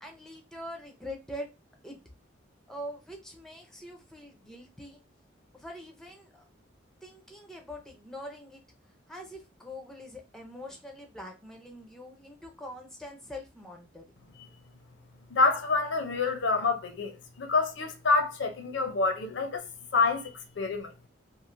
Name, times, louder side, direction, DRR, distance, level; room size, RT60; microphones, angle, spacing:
voice 1, 0.0-1.5 1.8-2.0 2.7-5.0 5.5-6.4 7.0-8.6 9.1-14.0, equal, 5° left, 0.5 m, -43 dB
voice 2, 15.3-19.7 19.9-20.9, left 3 dB, 70° left, 0.6 m, -27 dB
3.1 x 2.4 x 2.5 m
head